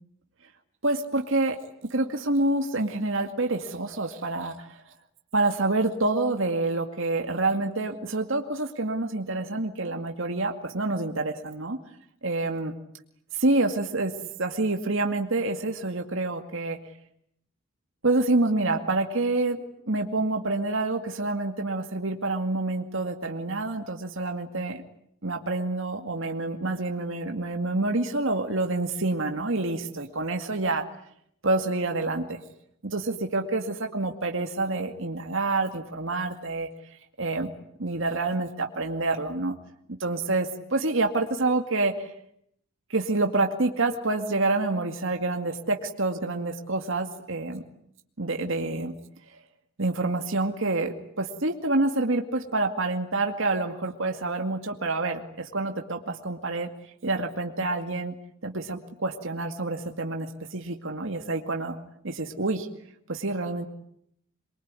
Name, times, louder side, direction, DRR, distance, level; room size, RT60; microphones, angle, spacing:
voice 1, 0.8-1.6 1.9-4.8 5.3-11.8 12.2-12.7 13.3-14.1 14.4-16.8 18.0-24.8 25.2-30.9 31.4-32.4 32.8-36.7 37.2-37.5 37.8-39.5 40.0-42.1 42.9-47.6 48.2-48.9 49.8-56.7 57.0-58.1 58.4-61.8 62.0-62.7 63.1-63.7, right 2 dB, 60° right, 5 dB, 2.2 m, -27 dB
23.5 x 23.5 x 9.7 m, 0.72 s
head